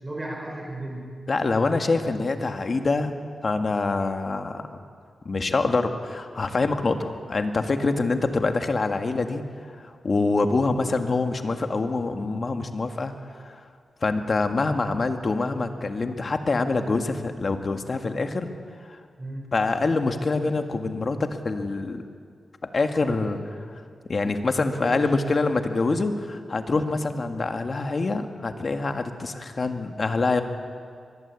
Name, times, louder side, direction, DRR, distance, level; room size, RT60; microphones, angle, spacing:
voice 1, 0.0-1.2 19.2-19.5 22.9-23.3 24.7-25.1, right 1 dB, 20° right, 0 dB, 4.6 m, -35 dB
voice 2, 1.3-3.1 3.4-4.6 5.3-9.4 9.7-13.5 14.0-18.5 18.9-19.0 19.5-22.0 22.7-23.4 24.1-30.4, left 3 dB, 45° left, 6 dB, 1.9 m, -25 dB
23.0 x 21.0 x 8.4 m, 2.2 s
cardioid pair, 85°, 0 cm